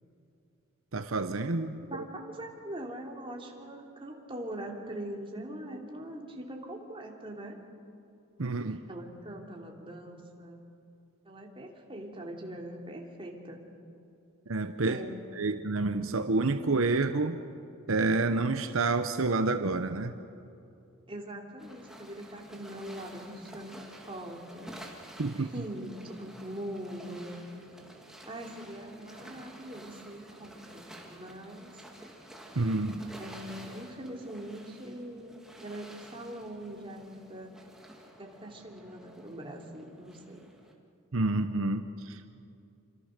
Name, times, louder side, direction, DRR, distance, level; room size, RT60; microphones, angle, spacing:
voice 1, 0.9-1.8 8.4-8.8 14.5-15.0 15.4-17.4 17.9-20.1 25.2-25.5 32.6-33.0 41.1-42.3, right 3 dB, 75° right, 8 dB, 0.9 m, -28 dB
voice 2, 1.9-7.6 8.7-10.6 11.2-13.6 14.9-15.2 21.1-24.7 25.4-25.9 26.2-27.4 28.2-31.8 33.2-37.5 38.2-40.4, right 1 dB, 25° right, 0 dB, 3.2 m, -42 dB
sound 1, 21.6-40.7, right 1 dB, ahead, 2.2 m, -51 dB
27.5 x 25.5 x 6.7 m, 2.6 s
head